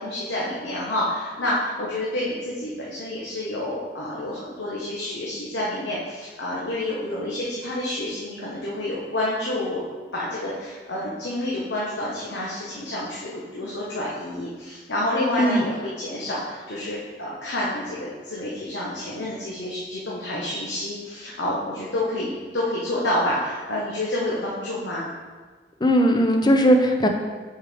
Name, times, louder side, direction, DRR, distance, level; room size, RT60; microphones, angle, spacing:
voice 1, 0.0-9.8 10.1-25.1, left 1 dB, 85° left, -6 dB, 1.1 m, -29 dB
voice 2, 25.8-27.1, equal, 25° left, 4 dB, 0.5 m, -18 dB
6.5 x 4.7 x 3.5 m, 1.4 s
head